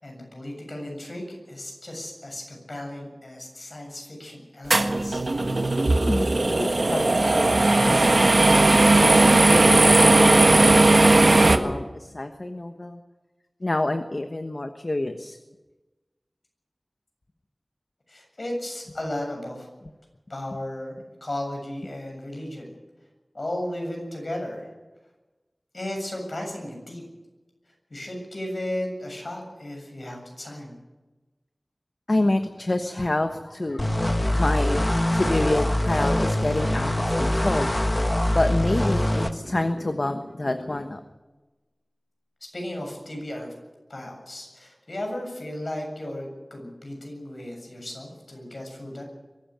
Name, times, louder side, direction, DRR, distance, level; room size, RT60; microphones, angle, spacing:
voice 1, 0.0-5.2 18.1-19.7 20.3-22.7 23.3-24.7 25.7-27.0 27.9-30.8 42.5-43.5 43.9-49.0, left 1 dB, 65° left, 2 dB, 7.4 m, -35 dB
sound 1, 4.7-11.6, right 2 dB, 70° right, 1.5 m, -17 dB
voice 2, 6.1-7.5 7.8-8.4 8.9-13.0 13.6-15.4 32.1-33.9 34.3-37.8 38.3-41.0, left 2 dB, 50° left, 7 dB, 1.2 m, -28 dB
sound 2, 33.8-39.3, left 1 dB, 30° left, 1.3 m, -23 dB
23.0 x 13.5 x 9.0 m, 1.1 s
wide cardioid pair, 55°, 0 cm